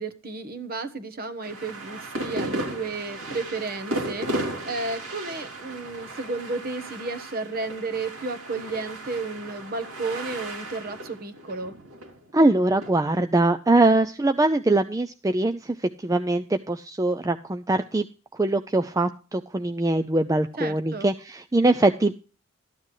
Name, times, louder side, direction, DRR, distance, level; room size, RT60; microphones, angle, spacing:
voice 1, 0.0-11.7 20.6-21.1, right 3 dB, 45° right, 9 dB, 1.2 m, -33 dB
sound 1, 1.4-12.9, right 1 dB, 80° right, 2.8 m, -35 dB
voice 2, 12.3-18.0 18.4-22.1, right 2 dB, 15° right, 7 dB, 0.4 m, -22 dB
13.5 x 9.7 x 3.2 m, 0.35 s
head